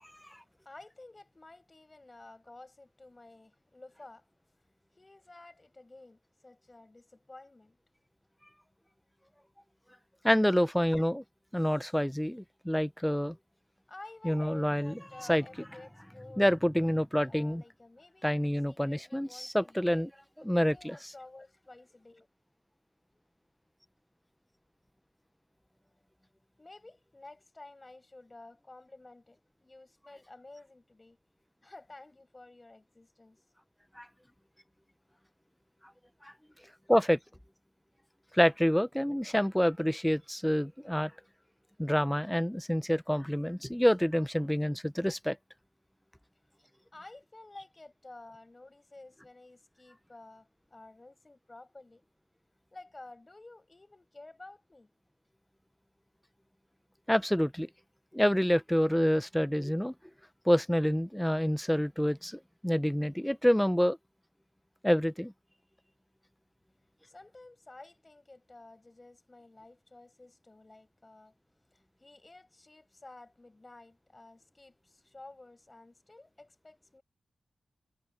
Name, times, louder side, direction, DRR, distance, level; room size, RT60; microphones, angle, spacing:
voice 1, 0.0-4.2 5.0-7.8 13.9-18.3 18.6-20.1 20.7-22.3 26.6-31.2 31.6-33.4 36.5-36.6 46.9-52.1 52.7-54.9 67.0-71.3 71.7-77.0, left 2 dB, 25° left, 7.5 m, -52 dB
voice 2, 10.2-11.2 11.5-13.4 14.2-14.9 15.3-15.4 16.4-17.6 18.2-20.1 20.4-21.0 34.0-34.1 36.2-36.3 36.9-37.2 38.3-41.1 41.8-45.4 57.1-57.7 58.1-59.9 60.5-64.0 64.8-65.3, equal, 5° left, 0.8 m, -27 dB
wide cardioid pair, 105°, 0 cm